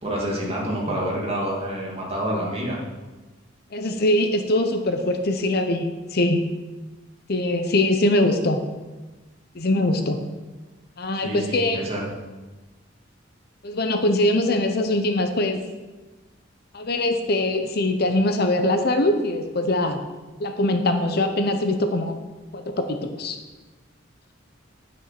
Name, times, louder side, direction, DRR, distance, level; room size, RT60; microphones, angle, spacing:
voice 1, 0.0-2.8 11.2-12.1, right 1 dB, 30° right, -3 dB, 2.5 m, -27 dB
voice 2, 3.7-6.5 7.3-8.6 9.5-10.2 11.0-11.8 13.6-15.6 16.7-20.0 20.4-22.2 22.5-23.4, left 1 dB, 50° left, 7 dB, 0.8 m, -22 dB
10.5 x 6.3 x 5.9 m, 1.2 s
head